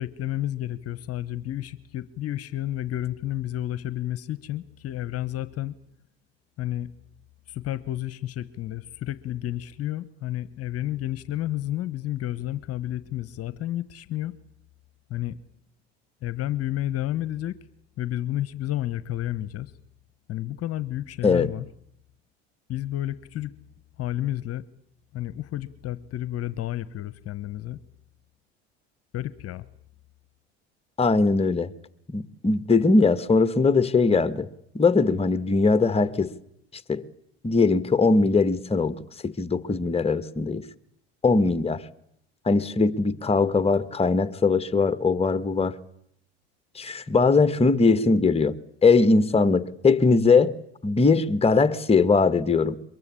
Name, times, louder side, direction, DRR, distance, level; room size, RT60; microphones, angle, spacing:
voice 1, 0.0-5.7 6.6-6.9 7.5-14.4 15.1-15.4 16.2-17.6 18.0-19.7 20.3-21.7 22.7-23.5 24.0-24.7 25.1-27.8 29.1-29.7, left 13 dB, 50° left, 1.1 m, -31 dB
voice 2, 31.0-31.7 32.1-34.5 34.7-36.3 36.9-37.0 37.4-40.6 41.2-41.8 42.4-45.8 46.7-48.5 48.8-50.5 50.8-52.8, left 4 dB, 20° left, 1.5 m, -21 dB
23.5 x 22.5 x 8.4 m
hypercardioid pair, 75°, 32 cm